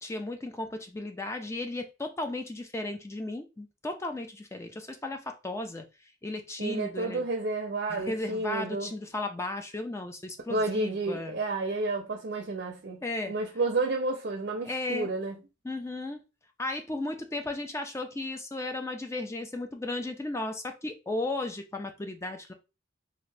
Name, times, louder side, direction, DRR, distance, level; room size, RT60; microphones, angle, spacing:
voice 1, 0.0-7.3 7.9-11.4 13.0-13.3 14.6-15.1 15.6-16.2 16.6-22.5, left 2 dB, 15° left, 0.4 m, -35 dB
voice 2, 6.6-8.9 10.5-15.4, right 3 dB, 55° right, 0.5 m, -31 dB
2.7 x 2.4 x 3.2 m
head